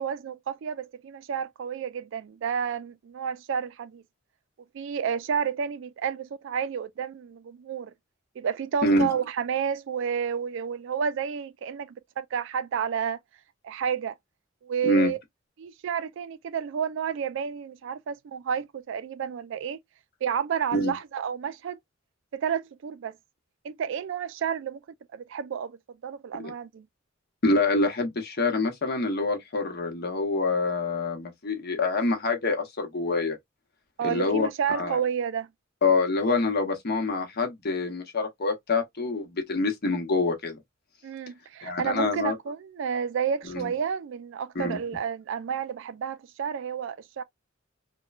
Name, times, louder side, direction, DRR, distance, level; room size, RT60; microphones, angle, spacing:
voice 1, 0.0-4.0 4.7-7.9 8.4-13.2 13.6-14.1 14.6-15.2 15.6-19.8 20.2-21.8 22.3-23.2 23.6-24.8 25.1-25.8 26.0-26.9 34.0-35.5 41.0-47.2, right 7 dB, 70° right, 0.3 m, -30 dB
voice 2, 8.8-9.1 14.8-15.1 20.7-20.9 26.4-26.5 27.4-33.4 34.0-35.0 35.8-40.6 41.6-42.4 43.4-43.7 44.5-44.8, left 3 dB, 55° left, 0.8 m, -26 dB
3.1 x 2.2 x 2.3 m
head